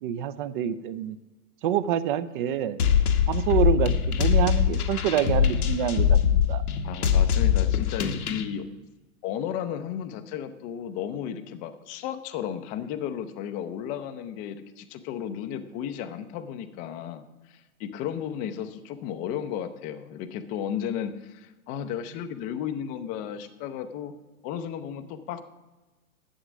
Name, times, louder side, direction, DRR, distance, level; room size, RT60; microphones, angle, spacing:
voice 1, 0.0-1.2 1.6-2.8 3.3-6.6, right 10 dB, 35° right, 14 dB, 0.5 m, -27 dB
sound 1, 2.8-8.4, left 8 dB, 80° left, 1.2 m, -22 dB
voice 2, 6.8-8.7 9.2-24.1 24.4-25.4, left 9 dB, 20° left, 10 dB, 0.5 m, -34 dB
11.5 x 8.0 x 6.1 m, 1.2 s
hypercardioid pair, 120°, 44 cm